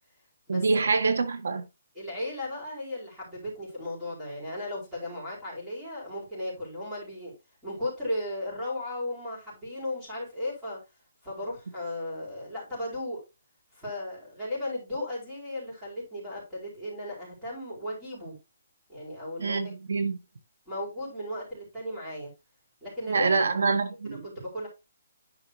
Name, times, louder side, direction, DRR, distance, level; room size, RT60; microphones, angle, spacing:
voice 1, 0.5-1.6 19.4-20.2 23.1-24.3, right 4 dB, 80° right, 1.7 m, -26 dB
voice 2, 1.9-7.3 7.6-10.8 11.2-13.2 13.7-18.4 18.9-19.6 20.7-22.3 22.8-23.5 24.2-24.7, left 1 dB, 5° right, 4.4 m, -35 dB
10.5 x 4.9 x 3.1 m
hypercardioid pair, 175°, 0 cm